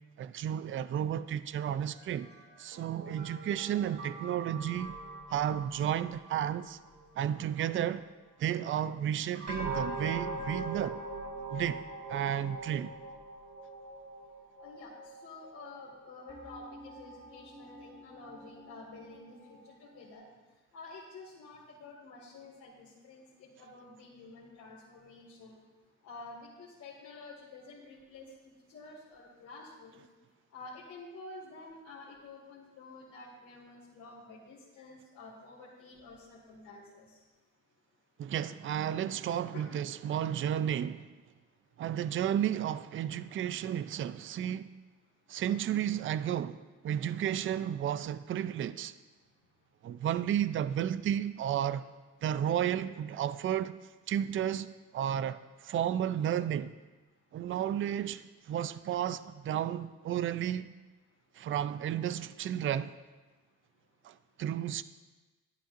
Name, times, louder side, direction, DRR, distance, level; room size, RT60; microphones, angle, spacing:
voice 1, 0.2-2.3 2.6-5.0 5.3-6.8 7.2-8.1 8.4-11.0 11.5-11.8 12.1-13.0 38.2-41.1 41.8-44.7 45.3-48.9 49.8-51.8 52.2-53.8 54.1-56.7 57.3-60.7 61.4-62.9 64.0-64.8, right 10 dB, 45° right, 0.4 m, -32 dB
sound 1, 1.9-7.5 9.3-20.1, right 2 dB, 60° right, 2.2 m, -43 dB
voice 2, 14.6-14.9 15.2-20.2 20.7-25.6 26.0-28.3 28.7-30.0 30.5-37.1 39.5-39.7, left 3 dB, 75° left, 2.0 m, -50 dB
11.5 x 10.0 x 2.5 m
cardioid pair, 90°, 30 cm